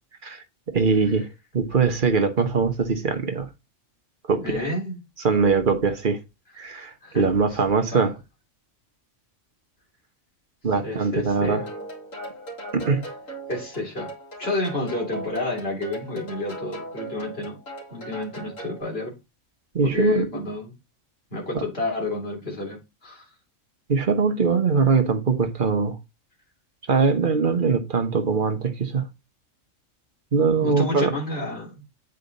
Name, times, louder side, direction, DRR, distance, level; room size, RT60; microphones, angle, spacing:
voice 1, 0.2-1.3 1.5-3.5 4.3-4.6 5.2-6.2 6.6-8.1 10.6-11.6 12.7-13.1 19.7-20.3 21.5-21.6 23.9-26.0 26.9-29.0 30.3-31.1, right 5 dB, 40° right, 1.3 m, -22 dB
voice 2, 4.4-5.0 7.0-7.3 7.9-8.1 10.8-11.7 13.5-14.1 14.4-17.6 17.9-19.2 19.8-20.7 21.3-23.3 30.6-31.8, left 2 dB, 50° left, 3.7 m, -30 dB
sound 1, 11.4-18.8, right 1 dB, 85° left, 2.8 m, -38 dB
8.3 x 4.9 x 4.1 m
omnidirectional pair, 1.3 m